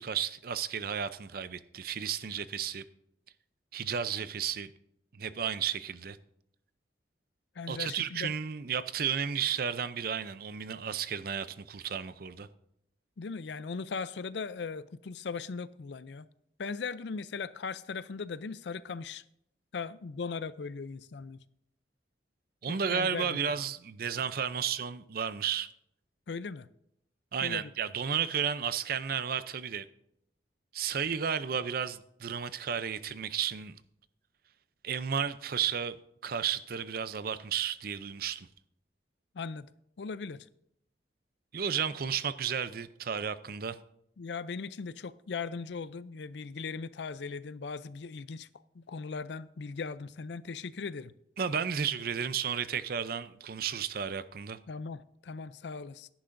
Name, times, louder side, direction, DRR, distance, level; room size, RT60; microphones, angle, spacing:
voice 1, 0.0-2.8 3.7-4.7 5.1-6.2 7.7-12.5 22.6-25.7 27.3-29.9 30.7-33.8 34.8-36.0 36.2-38.5 41.5-43.8 51.4-54.6, right 7 dB, 55° right, 0.5 m, -33 dB
voice 2, 7.6-8.3 13.2-16.3 16.6-19.2 19.7-21.4 22.7-23.4 26.3-26.7 27.4-27.7 39.3-39.7 40.0-40.5 44.2-48.5 48.8-51.1 54.7-56.1, left 5 dB, 75° left, 0.5 m, -38 dB
16.5 x 10.0 x 2.6 m
head